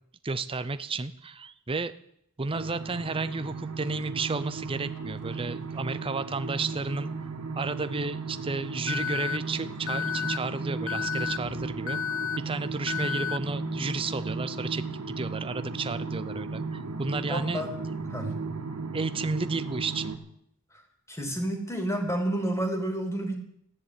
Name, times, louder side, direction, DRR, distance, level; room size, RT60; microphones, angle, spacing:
voice 1, 0.2-2.0 2.4-7.1 7.6-12.0 12.4-17.7 18.9-20.1, right 3 dB, 25° right, 12 dB, 0.6 m, -32 dB
sound 1, 2.5-20.2, right 3 dB, 90° right, 2.1 m, -35 dB
Alarm, 8.9-9.4 9.9-10.4 10.9-11.4 11.9-12.4 12.9-13.4, left 8 dB, 60° left, 0.7 m, -31 dB
voice 2, 17.3-17.7 18.1-18.3 20.7-20.8 21.1-23.4, right 1 dB, 15° left, 4 dB, 2.9 m, -30 dB
13.5 x 10.0 x 9.5 m, 0.72 s
head